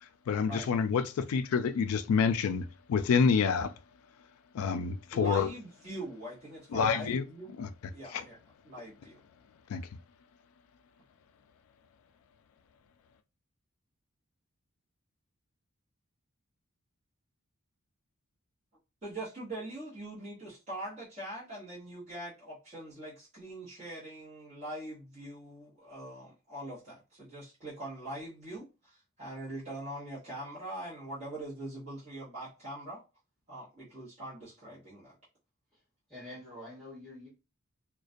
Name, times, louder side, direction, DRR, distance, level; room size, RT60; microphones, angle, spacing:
voice 1, 0.0-3.7 4.5-5.5 6.7-7.2 7.6-7.7 8.1-8.2 9.7-9.9, left 6 dB, 75° left, 0.3 m, -28 dB
voice 2, 5.1-7.5 7.9-8.4 8.7-9.2 19.0-33.0 33.5-35.2, right 1 dB, 30° right, 0.9 m, -42 dB
voice 3, 36.1-37.3, left 1 dB, 5° left, 0.8 m, -46 dB
2.3 x 2.2 x 2.5 m
head